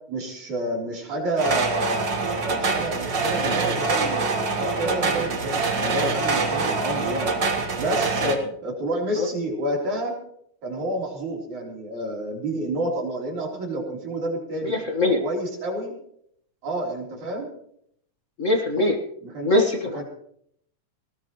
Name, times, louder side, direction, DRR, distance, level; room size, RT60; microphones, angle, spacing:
voice 1, 0.1-2.1 2.5-7.3 7.8-10.2 10.6-14.8 15.0-15.9 16.6-17.5 19.2-19.5 19.9-20.0, right 1 dB, 60° right, -1 dB, 5.2 m, -29 dB
sound 1, 1.4-8.4, right 4 dB, 40° right, 1.8 m, -25 dB
voice 2, 14.6-15.2 18.4-19.0 19.4-20.0, left 2 dB, 60° left, 2 dB, 0.7 m, -22 dB
20.0 x 19.0 x 3.1 m, 0.69 s
omnidirectional pair, 3.8 m